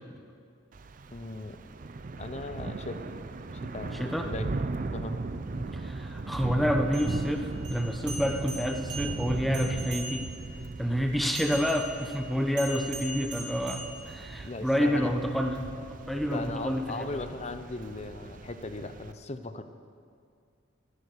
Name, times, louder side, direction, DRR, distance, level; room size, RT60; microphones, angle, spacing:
Thunder / Rain, 0.7-19.1, right 3 dB, 45° right, 0.5 m, -38 dB
voice 1, 1.1-1.6 2.2-3.1 3.6-4.5 4.9-5.2 14.4-15.1 16.3-19.6, left 2 dB, 35° left, 10 dB, 0.7 m, -38 dB
voice 2, 3.9-4.3 5.6-10.3 10.8-17.1, equal, ahead, 4 dB, 0.9 m, -29 dB
sound 1, 6.9-10.5 11.3-14.5, right 2 dB, 60° right, 3.2 m, -41 dB
14.5 x 10.0 x 6.8 m, 2.2 s
head